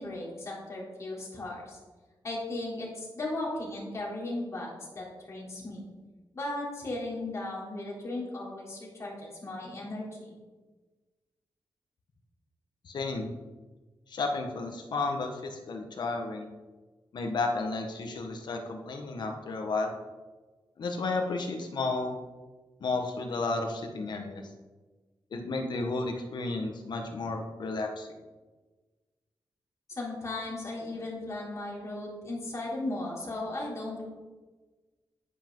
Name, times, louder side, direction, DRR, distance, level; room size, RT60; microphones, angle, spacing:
voice 1, 0.0-1.8 2.2-5.8 6.3-10.3 29.9-34.1, left 2 dB, 35° left, -4 dB, 3.7 m, -36 dB
voice 2, 12.8-13.3 14.1-16.5 17.1-19.9 20.8-22.2 22.8-24.4 25.3-28.1, left 3 dB, 60° left, 3 dB, 1.5 m, -32 dB
10.0 x 10.0 x 4.0 m, 1.2 s
wide cardioid pair, 160°, 8 cm